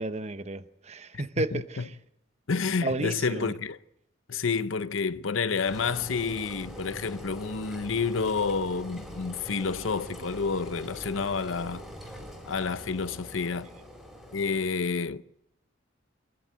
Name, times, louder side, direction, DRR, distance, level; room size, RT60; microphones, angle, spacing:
voice 1, 0.0-2.0 2.8-3.5, right 2 dB, 35° right, 0.9 m, -32 dB
voice 2, 1.1-1.8 2.5-3.8 4.3-11.8 12.5-13.7 14.3-15.2, left 5 dB, 80° left, 0.7 m, -29 dB
Engine, 5.6-14.6, equal, ahead, 4.6 m, -43 dB
24.5 x 14.5 x 8.1 m
head